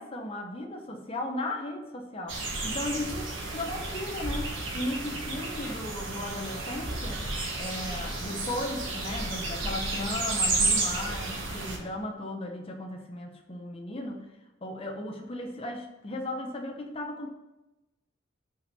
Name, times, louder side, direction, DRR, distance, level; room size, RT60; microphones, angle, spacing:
voice 1, 0.0-14.3 14.6-17.3, left 1 dB, 30° left, 2 dB, 0.8 m, -36 dB
sound 1, 2.3-11.8, right 2 dB, 70° right, 1.4 m, -32 dB
5.6 x 5.2 x 6.6 m, 1.0 s
head